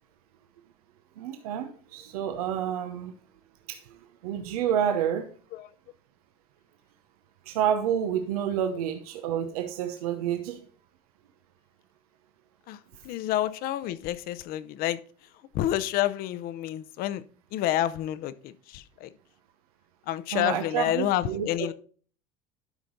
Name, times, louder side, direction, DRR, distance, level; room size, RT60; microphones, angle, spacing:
voice 1, 1.2-3.2 3.7-4.0 4.2-5.3 7.4-10.6 20.3-21.5, right 9 dB, 90° right, 1.0 m, -29 dB
voice 2, 13.0-15.0 15.5-17.2 17.5-19.1 20.1-21.7, left 13 dB, 55° left, 0.8 m, -29 dB
12.0 x 5.1 x 3.9 m
supercardioid pair, 115°, 18 cm